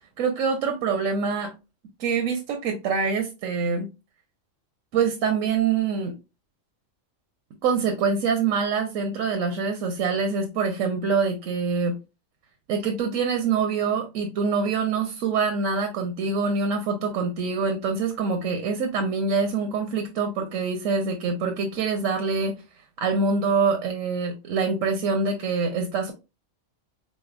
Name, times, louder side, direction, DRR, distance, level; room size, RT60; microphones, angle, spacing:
voice 1, 0.2-1.5 2.0-3.9 4.9-6.2 7.6-12.0 12.7-22.5 23.0-26.1, right 5 dB, 85° right, 1.1 m, -25 dB
4.1 x 3.3 x 2.3 m
omnidirectional pair, 1.3 m